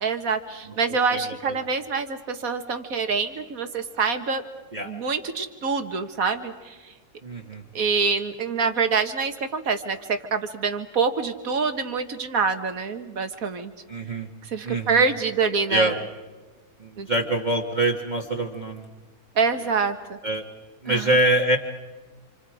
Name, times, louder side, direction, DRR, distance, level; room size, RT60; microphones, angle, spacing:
voice 1, 0.0-4.4 4.8-6.8 7.7-13.7 14.4-16.0 17.0-17.1 19.4-20.2 20.9-21.2, right 5 dB, 60° right, 7 dB, 2.0 m, -26 dB
voice 2, 1.1-1.5 4.7-4.9 7.2-7.6 13.9-14.3 14.6-15.0 15.7-16.0 16.8-18.9 20.2-20.4 20.8-21.6, right 1 dB, 30° right, 1 dB, 1.6 m, -24 dB
29.5 x 27.5 x 5.0 m, 1.3 s
omnidirectional pair, 1.7 m